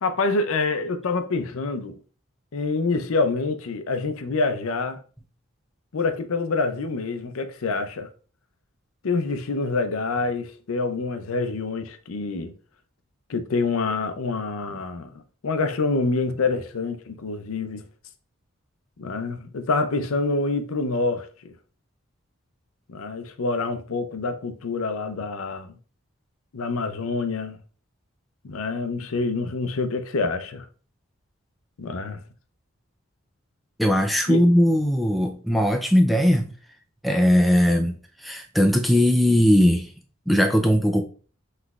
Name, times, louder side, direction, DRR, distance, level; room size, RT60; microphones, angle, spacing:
voice 1, 0.0-2.0 2.5-5.0 5.9-8.1 9.0-12.5 13.3-15.1 15.4-17.8 19.0-21.5 22.9-25.8 26.5-27.6 28.4-30.7 31.8-32.2 34.3-34.4, left 3 dB, 85° left, 0.5 m, -26 dB
voice 2, 33.8-36.5 37.0-39.9 40.3-41.0, equal, ahead, 0.4 m, -19 dB
5.9 x 3.2 x 2.3 m
head